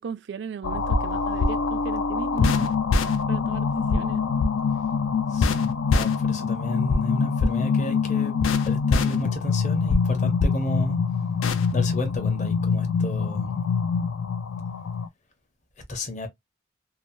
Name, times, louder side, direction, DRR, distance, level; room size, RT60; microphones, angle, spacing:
voice 1, 0.0-2.7 3.3-4.2, right 6 dB, 60° right, 0.3 m, -36 dB
sound 1, 0.6-15.1, left 5 dB, 85° left, 0.4 m, -24 dB
voice 2, 5.3-8.3 8.6-11.0 11.7-13.6 15.9-16.3, left 1 dB, 35° left, 0.7 m, -32 dB
2.8 x 2.0 x 2.5 m
head